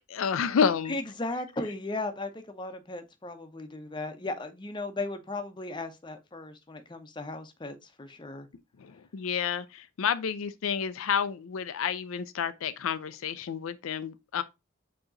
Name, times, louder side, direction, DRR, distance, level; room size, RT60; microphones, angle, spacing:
voice 1, 0.1-1.0 8.8-14.4, left 7 dB, 85° left, 0.4 m, -30 dB
voice 2, 0.9-8.5, left 2 dB, 20° left, 0.6 m, -36 dB
7.0 x 2.9 x 2.5 m
head